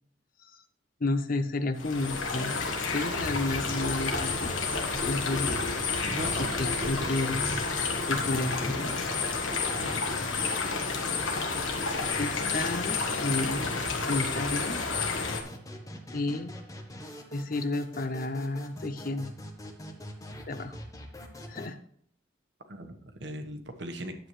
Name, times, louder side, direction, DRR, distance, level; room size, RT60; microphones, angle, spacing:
voice 1, 1.0-2.6 2.9-4.5 4.9-5.6 6.6-7.6 8.1-9.1 12.2-13.7 14.0-14.8 16.1-16.6 17.3-19.3 20.5-20.8 21.5-21.8, left 2 dB, 45° left, 10 dB, 0.6 m, -31 dB
sound 1, 1.8-15.4, left 4 dB, 85° left, 1.4 m, -30 dB
sound 2, 3.1-14.7 14.9-15.0 15.2-15.3 15.5-15.6 15.8-15.9 16.1-16.2 16.4-16.5, equal, 25° right, 1.6 m, -41 dB
sound 3, 3.2-21.7, equal, 15° left, 0.9 m, -43 dB
voice 2, 6.1-7.1 9.7-10.0 22.7-24.2, right 1 dB, 60° right, 6 dB, 1.1 m, -39 dB
10.0 x 7.9 x 3.1 m, 0.63 s
head